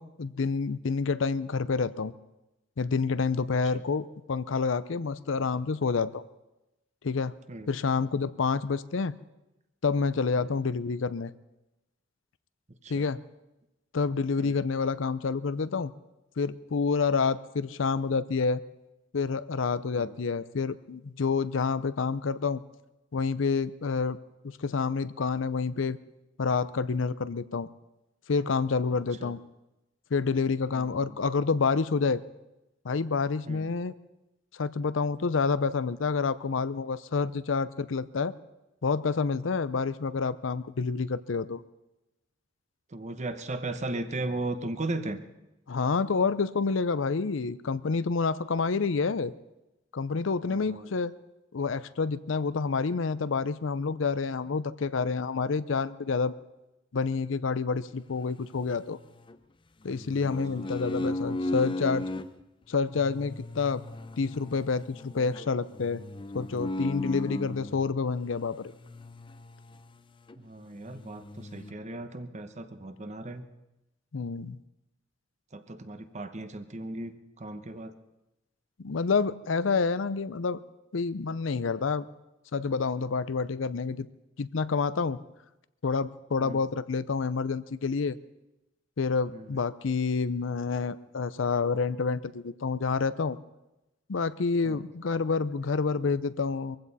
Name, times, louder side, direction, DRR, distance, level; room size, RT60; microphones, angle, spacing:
voice 1, 0.0-2.1 2.8-6.2 7.0-7.3 7.7-9.1 9.8-11.3 12.9-13.2 13.9-15.9 16.4-18.6 19.1-22.6 23.1-24.2 24.6-26.0 26.4-27.7 28.3-29.4 30.1-32.2 32.8-33.9 34.5-38.3 38.8-41.6 45.7-49.3 49.9-51.1 51.5-56.3 56.9-59.0 59.8-62.1 62.7-63.8 64.2-66.0 66.3-68.7 74.1-74.6 78.8-80.6 80.9-82.1 82.5-84.1 84.4-85.2 85.8-88.2 89.0-93.4 94.1-96.8, left 4 dB, 85° left, 15 dB, 0.6 m, -28 dB
voice 2, 30.7-31.2 33.5-33.7 42.9-45.2 50.4-50.9 60.6-60.8 67.3-67.4 70.4-73.4 75.5-77.9 86.4-86.6 89.3-89.5 94.6-94.8, right 2 dB, 40° right, 10 dB, 1.0 m, -37 dB
sound 1, 58.1-59.4 59.9-62.3 62.9-67.9 68.8-70.0 70.3-70.4 70.7-71.7, left 1 dB, 25° left, 0.6 m, -36 dB
22.0 x 15.5 x 4.1 m, 0.96 s
head